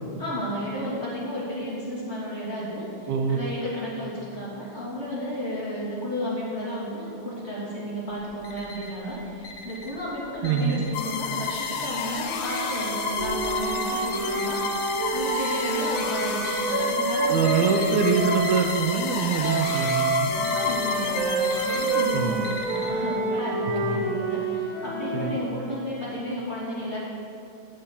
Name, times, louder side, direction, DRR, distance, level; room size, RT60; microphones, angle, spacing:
voice 1, 0.2-14.6 15.1-17.5 17.8-17.9 20.3-27.0, equal, 20° left, -9 dB, 3.0 m, -32 dB
voice 2, 3.1-3.4 10.4-10.8 17.3-20.3 22.1-22.3 23.8-24.0 25.1-25.4, right 6 dB, 75° right, 3 dB, 2.1 m, -24 dB
Alarm, 8.1-9.1 9.4-11.1 11.4-12.1 12.4-16.9 17.4-18.1 18.3-19.0 19.2-22.9, left 2 dB, 50° left, 1.7 m, -39 dB
sound 1, 10.9-22.8, left 6 dB, 75° left, 1.2 m, -31 dB
Wind instrument woodwind instrument, 12.3-18.7 19.4-25.4, right 3 dB, 55° right, 1.7 m, -28 dB
8.7 x 8.1 x 8.2 m, 2.6 s
omnidirectional pair, 3.3 m